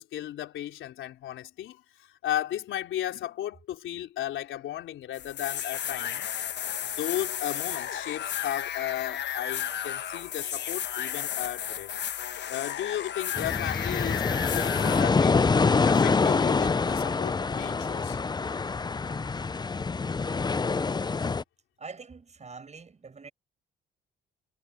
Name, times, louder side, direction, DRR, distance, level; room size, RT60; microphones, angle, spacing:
voice 1, 0.0-6.3 7.0-11.9 12.5-15.4 15.8-18.2, left 12 dB, 80° left, 3.9 m, -35 dB
sound 1, 5.1-15.0, left 9 dB, 60° left, 1.4 m, -33 dB
sound 2, 13.3-21.4, left 4 dB, 20° left, 0.6 m, -26 dB
voice 2, 21.8-23.3, right 4 dB, 35° right, 7.8 m, -44 dB
cardioid pair, 90°, 20 cm